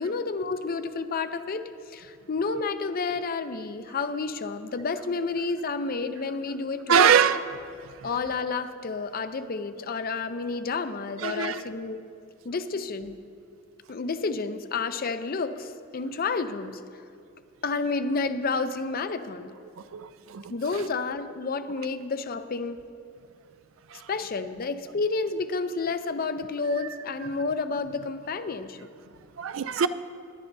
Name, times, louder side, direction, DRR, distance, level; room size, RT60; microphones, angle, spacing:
voice 1, 0.0-7.1 8.0-12.1 12.4-13.2 13.9-16.8 17.6-19.5 20.5-22.8 24.1-28.8, left 4 dB, 50° left, 10 dB, 0.5 m, -30 dB
voice 2, 6.9-7.4 11.2-11.6 19.9-20.4 23.9-24.0 29.4-29.9, right 7 dB, 85° right, 13 dB, 0.4 m, -22 dB
18.5 x 11.0 x 2.7 m, 2.4 s
head